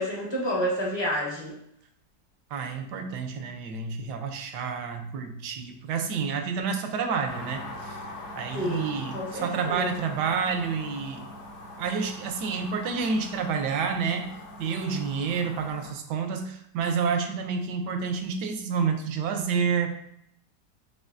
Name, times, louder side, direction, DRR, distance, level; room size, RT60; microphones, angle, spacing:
voice 1, 0.0-1.5 8.5-9.9, equal, 25° left, -4 dB, 0.5 m, -29 dB
voice 2, 2.5-8.0 8.4-11.3 11.8-14.3 14.6-19.9, right 5 dB, 75° right, 6 dB, 1.2 m, -29 dB
sound 1, 7.3-15.9, left 1 dB, 55° left, 0.8 m, -42 dB
6.3 x 3.0 x 2.5 m, 0.71 s
omnidirectional pair, 1.9 m